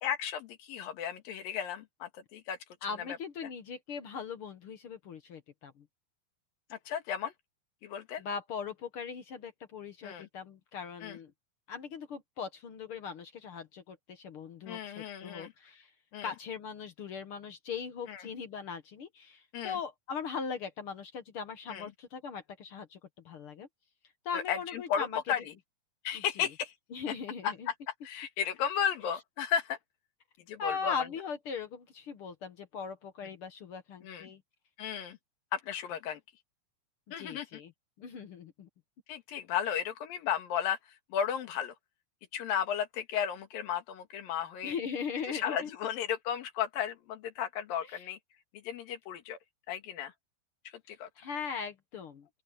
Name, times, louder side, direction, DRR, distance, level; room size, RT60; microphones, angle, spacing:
voice 1, 0.0-2.6 6.7-7.3 7.8-8.2 10.0-10.3 11.0-11.2 14.7-15.5 16.1-16.3 18.1-18.2 19.5-19.8 21.7-21.9 24.3-25.5 26.1-26.7 27.1-27.2 27.4-27.7 28.0-29.8 30.5-31.1 34.0-34.3 34.8-35.2 35.5-36.2 37.1-37.5 39.1-41.7 42.3-44.8 45.3-48.2 48.5-49.4 49.7-50.1 50.7-51.1, left 8 dB, 85° left, 3.5 m, -34 dB
voice 2, 2.8-5.8 8.2-11.3 11.7-15.9 16.2-23.0 23.2-23.7 24.2-25.2 26.1-26.5 26.9-27.7 30.6-34.4 37.2-37.7 38.0-38.7 44.6-45.7 47.9-48.1 51.2-52.3, left 6 dB, 60° left, 1.5 m, -39 dB
open air
omnidirectional pair, 4.0 m